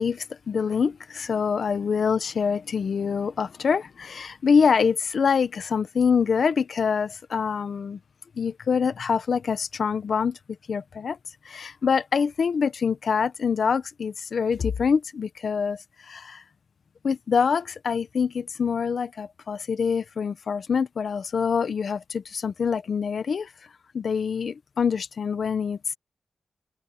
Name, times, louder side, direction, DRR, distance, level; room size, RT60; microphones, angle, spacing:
voice 1, 0.0-8.0 8.4-10.4 10.7-11.2 11.4-16.4 17.0-23.5 23.9-25.9, left 6 dB, 70° left, 1.1 m, -25 dB
open air
wide cardioid pair, 115°, 0 cm